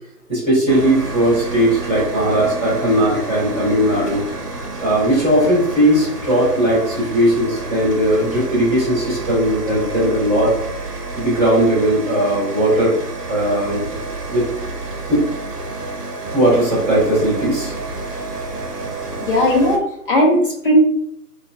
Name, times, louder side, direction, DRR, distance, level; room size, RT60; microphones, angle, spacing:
voice 1, 0.3-4.2 4.8-10.6 11.1-13.0 13.3-13.8 14.3-14.4 15.1-15.3 16.3-17.7, right 1 dB, 5° left, -16 dB, 1.0 m, -17 dB
sound 1, 0.7-19.8, right 2 dB, 80° right, 0.9 m, -29 dB
voice 2, 19.2-20.8, equal, 35° left, -3 dB, 0.9 m, -16 dB
4.5 x 2.4 x 2.6 m, 0.72 s
figure-of-eight pair, 155°, 47 cm